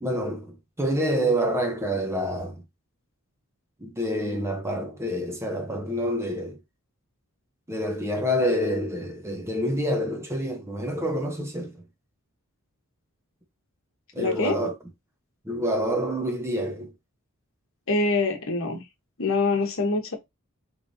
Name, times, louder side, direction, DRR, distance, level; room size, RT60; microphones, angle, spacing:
voice 1, 0.0-2.6 3.8-6.6 7.7-11.7 14.1-14.7 15.4-16.9, equal, 10° right, 0.7 m, -27 dB
voice 2, 14.2-14.6 17.9-18.8 19.2-20.2, left 3 dB, 60° left, 1.0 m, -24 dB
3.9 x 3.2 x 2.6 m
head